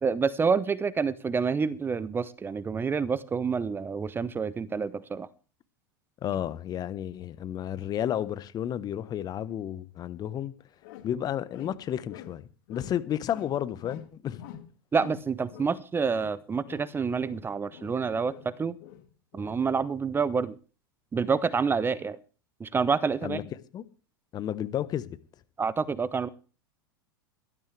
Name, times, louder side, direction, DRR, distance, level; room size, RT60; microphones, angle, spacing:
voice 1, 0.0-5.3 14.9-18.8 19.3-20.6 21.1-22.2 22.6-23.4 25.6-26.3, right 5 dB, 20° right, 0.7 m, -28 dB
voice 2, 6.2-10.5 11.0-14.4 23.2-23.4 23.7-23.8 24.3-25.1, left 10 dB, 35° left, 1.1 m, -32 dB
sound 1, 10.4-10.5 10.8-11.2 11.5-12.4 12.7-13.0 13.3-14.1 14.4-15.8 16.1-16.4 16.6-18.0 18.3-19.7, left 11 dB, 60° left, 2.3 m, -47 dB
17.5 x 12.5 x 3.4 m
hypercardioid pair, 100°, 12 cm